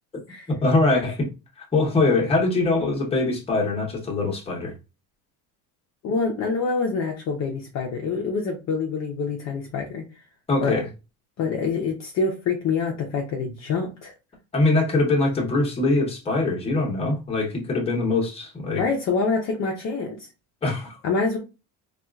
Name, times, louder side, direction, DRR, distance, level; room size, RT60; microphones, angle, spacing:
voice 1, 0.5-1.3 1.6-4.7 10.5-10.9 14.5-18.8 20.6-20.9, left 2 dB, 15° left, -1 dB, 0.9 m, -22 dB
voice 2, 6.0-10.0 10.6-10.8 11.4-14.1 18.8-20.3 21.0-21.4, left 4 dB, 40° left, 1 dB, 0.6 m, -26 dB
4.1 x 2.4 x 2.3 m, 0.29 s
cardioid pair, 160°, 38 cm